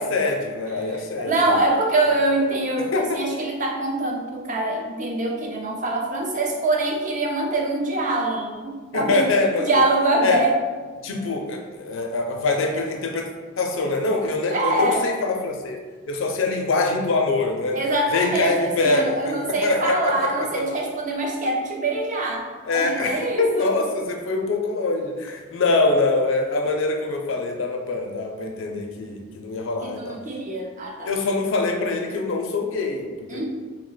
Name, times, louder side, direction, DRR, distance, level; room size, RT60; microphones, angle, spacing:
voice 1, 0.0-1.7 2.4-2.5 2.9-3.2 8.9-9.8 10.2-10.4 11.0-13.3 13.6-15.8 16.1-17.8 18.1-20.6 22.6-30.2 31.1-33.5, left 3 dB, 70° left, 3 dB, 0.4 m, -24 dB
voice 2, 0.9-9.3 9.6-10.6 14.5-15.0 17.7-18.5 18.8-23.7 29.8-31.1 33.3-33.5, right 2 dB, 35° right, 1 dB, 0.4 m, -24 dB
2.8 x 2.1 x 3.8 m, 1.4 s
head